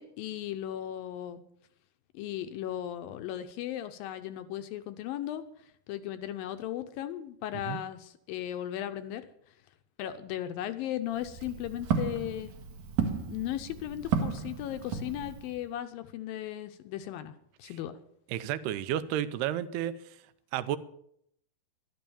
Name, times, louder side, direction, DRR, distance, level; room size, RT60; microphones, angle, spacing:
voice 1, 0.0-1.4 2.1-5.4 5.9-9.2 10.0-12.5 13.3-17.3 17.6-18.0, left 12 dB, 75° left, 10 dB, 2.2 m, -36 dB
Walk footsteps, 11.1-15.6, right 6 dB, 60° right, 2.4 m, -33 dB
voice 2, 18.3-19.9 20.5-20.8, right 11 dB, 80° right, 13 dB, 2.7 m, -31 dB
12.5 x 11.5 x 7.0 m, 0.70 s
omnidirectional pair, 4.7 m